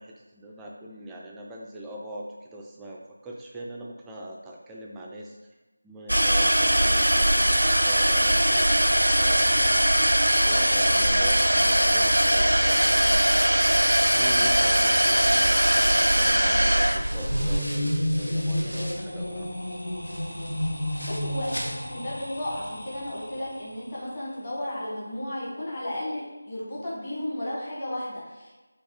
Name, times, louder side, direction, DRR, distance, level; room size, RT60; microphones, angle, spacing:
voice 1, 0.0-5.4 5.8-10.2 10.4-13.7 14.1-19.6, right 1 dB, 5° right, -3 dB, 0.3 m, -41 dB
sound 1, 6.1-17.6, right 1 dB, 85° right, 0.3 m, -21 dB
sound 2, 16.9-23.8, left 1 dB, 60° left, 0.9 m, -31 dB
sound 3, 17.0-19.2 19.6-22.2 22.5-22.6 23.1-23.2, equal, 90° left, 0.8 m, -42 dB
voice 2, 21.0-28.6, left 1 dB, 25° left, -7 dB, 1.2 m, -34 dB
5.3 x 2.3 x 3.9 m, 1.2 s
figure-of-eight pair, 165°, 0 cm